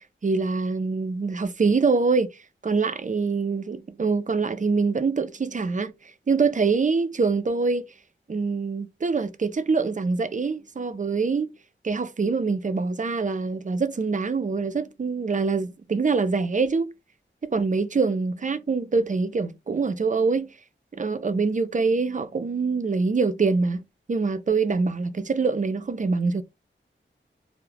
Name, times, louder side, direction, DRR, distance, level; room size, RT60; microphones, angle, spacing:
voice 1, 0.2-2.3 2.6-5.9 6.3-7.8 8.3-11.5 11.8-16.9 17.4-20.5 20.9-23.8 24.1-26.4, right 4 dB, 40° right, 0.4 m, -24 dB
2.3 x 2.1 x 3.2 m
wide cardioid pair, 70°, 20 cm